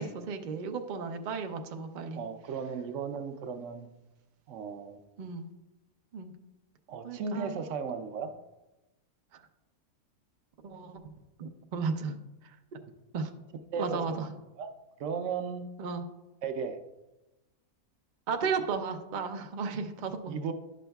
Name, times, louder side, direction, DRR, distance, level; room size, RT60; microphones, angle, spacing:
voice 1, 0.0-2.2 5.2-5.5 6.1-6.3 7.0-7.6 9.3-9.4 10.6-11.0 11.4-12.2 12.7-12.8 13.1-13.3 13.8-14.3 15.8-16.0 18.3-20.4, right 5 dB, 85° right, 5 dB, 0.4 m, -34 dB
voice 2, 2.1-3.9 4.5-5.0 6.9-8.3 13.7-14.2 14.6-14.7 15.0-15.7 16.4-16.8 20.3-20.5, right 5 dB, 65° right, 8 dB, 0.8 m, -35 dB
11.0 x 6.2 x 2.3 m, 1.0 s
omnidirectional pair, 1.6 m